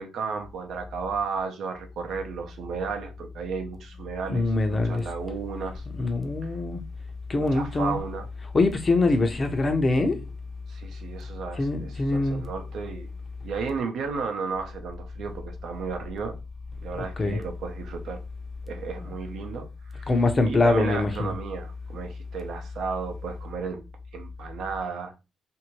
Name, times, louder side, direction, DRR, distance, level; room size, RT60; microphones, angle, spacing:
voice 1, 0.0-5.8 6.4-6.6 7.5-8.3 10.7-13.1 13.4-16.3 16.8-18.2 18.6-19.7 19.9-20.1 20.4-23.8 24.1-25.1, right 5 dB, 70° right, 0.7 m, -33 dB
voice 2, 4.3-5.0 6.0-6.8 7.3-8.0 8.5-10.2 11.6-12.5 17.2-17.4 20.1-21.3, left 2 dB, 30° left, 0.7 m, -23 dB
2.7 x 2.6 x 3.0 m
cardioid pair, 90°, 0 cm